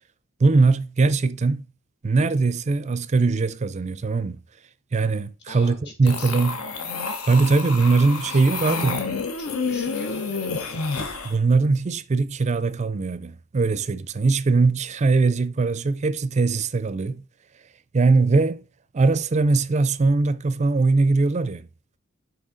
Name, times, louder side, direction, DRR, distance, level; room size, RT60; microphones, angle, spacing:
voice 1, 0.4-1.6 2.0-4.4 4.9-6.6 7.3-9.0 11.2-17.2 17.9-18.6 18.9-21.7, right 3 dB, 35° right, 0.4 m, -21 dB
voice 2, 5.5-6.4 8.3-9.1 9.4-10.9, left 1 dB, 55° left, 1.8 m, -43 dB
sound 1, 6.1-11.3, left 4 dB, 80° left, 0.9 m, -29 dB
6.2 x 4.6 x 3.8 m
head